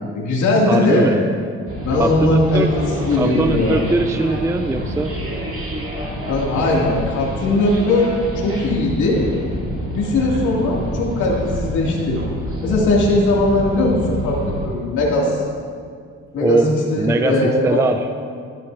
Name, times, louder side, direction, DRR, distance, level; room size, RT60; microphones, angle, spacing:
voice 1, 0.1-1.1 1.8-2.7 3.0-3.8 6.2-9.2 9.9-12.2 12.6-15.4 16.3-16.6 16.9-17.8, left 2 dB, 75° left, -4 dB, 2.4 m, -19 dB
voice 2, 0.7-1.2 1.9-2.7 3.2-5.2 16.4-16.6 17.0-18.1, right 2 dB, 10° right, 7 dB, 0.4 m, -21 dB
sound 1, 1.7-14.7, right 1 dB, 45° right, 2.5 m, -27 dB
12.5 x 10.5 x 2.7 m, 2.2 s
cardioid pair, 90°, 30 cm